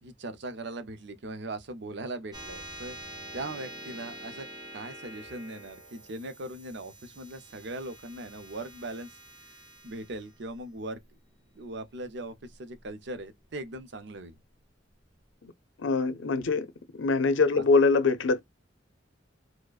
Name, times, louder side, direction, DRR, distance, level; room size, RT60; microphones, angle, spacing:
voice 1, 0.0-9.2 9.5-11.0 11.5-14.4 17.5-17.6, right 2 dB, 65° right, 0.7 m, -40 dB
sound 1, 2.3-13.2, right 1 dB, 25° right, 1.0 m, -47 dB
voice 2, 15.8-16.7 16.9-18.4, left 4 dB, 80° left, 0.6 m, -23 dB
4.8 x 2.1 x 2.3 m
head